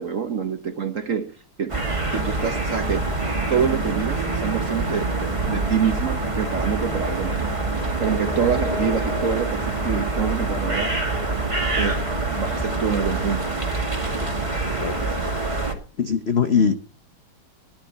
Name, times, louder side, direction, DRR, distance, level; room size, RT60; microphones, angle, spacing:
voice 1, 0.0-1.8 2.1-3.1 3.5-7.5 8.0-11.0 11.8-13.5, right 7 dB, 55° right, 8 dB, 0.9 m, -26 dB
sound 1, 1.7-15.7, right 2 dB, 15° right, 2.0 m, -25 dB
voice 2, 16.0-16.8, left 6 dB, 65° left, 9 dB, 0.6 m, -21 dB
15.5 x 11.0 x 4.2 m, 0.36 s
omnidirectional pair, 2.4 m